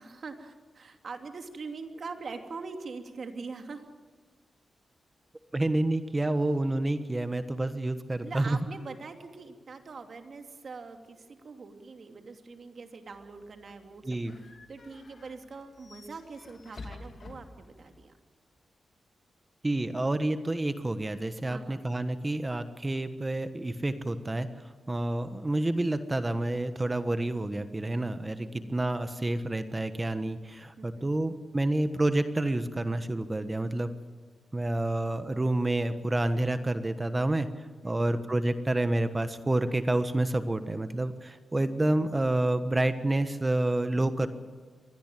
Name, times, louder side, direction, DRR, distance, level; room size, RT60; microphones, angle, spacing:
voice 1, 0.0-3.9 8.2-18.1 21.4-21.8 28.4-28.7 30.8-31.1 37.8-38.2, right 4 dB, 55° right, 6 dB, 2.7 m, -43 dB
voice 2, 5.5-8.6 14.1-14.3 19.6-24.5 24.9-33.9 34.5-44.3, right 1 dB, 20° right, 10 dB, 1.3 m, -29 dB
sound 1, 13.1-18.0, left 3 dB, 50° left, 2.7 m, -50 dB
23.0 x 17.5 x 9.1 m, 1.6 s
cardioid pair, 85°, 0 cm